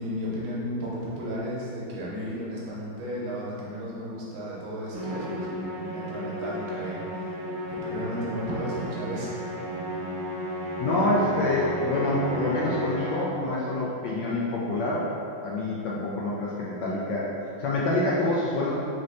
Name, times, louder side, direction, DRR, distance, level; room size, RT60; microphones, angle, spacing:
voice 1, 0.0-7.3 7.7-9.3, equal, 80° right, -6 dB, 1.6 m, -34 dB
Musical instrument, 4.9-13.4, equal, 60° right, 0.3 m, -34 dB
voice 2, 10.8-15.1 15.4-18.7, left 2 dB, 80° left, -6 dB, 0.9 m, -26 dB
5.2 x 3.1 x 2.6 m, 2.7 s
omnidirectional pair, 2.4 m